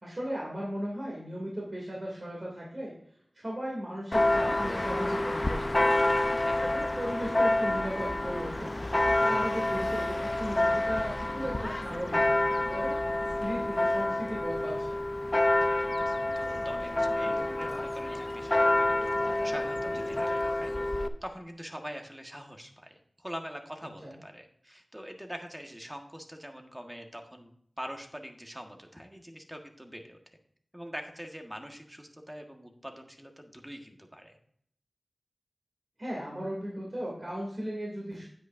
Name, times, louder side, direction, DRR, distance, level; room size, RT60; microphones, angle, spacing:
voice 1, 0.0-2.9 3.3-6.0 6.6-8.7 9.2-13.0 13.3-15.0 24.0-24.1 36.0-38.2, equal, 45° right, -3 dB, 2.6 m, -36 dB
Church bell, 4.1-21.1, left 1 dB, 35° left, 0.6 m, -28 dB
voice 2, 6.3-6.8 15.5-30.2 30.7-34.4, equal, 10° right, 3 dB, 1.5 m, -44 dB
9.4 x 8.5 x 2.6 m, 0.64 s
wide cardioid pair, 45°, 0 cm